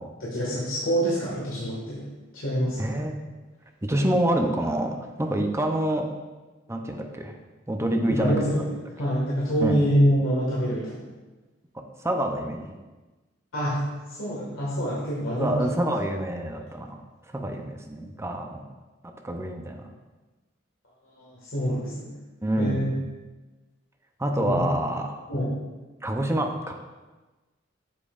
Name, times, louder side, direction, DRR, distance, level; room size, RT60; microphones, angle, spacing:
voice 1, 0.2-2.1 2.3-3.0 8.1-8.7 9.0-11.1 13.5-13.8 14.2-15.6 21.2-22.1 22.6-22.9 24.4-24.6 25.3-25.5, equal, 80° left, -8 dB, 1.9 m, -26 dB
voice 2, 2.8-3.2 3.8-6.1 6.7-7.3 7.7-8.6 9.6-9.8 12.0-12.8 15.3-17.0 17.3-18.7 19.2-19.9 22.4-22.9 24.2-25.1 26.0-26.7, right 1 dB, 15° right, 3 dB, 0.7 m, -27 dB
8.4 x 7.4 x 2.5 m, 1.2 s
head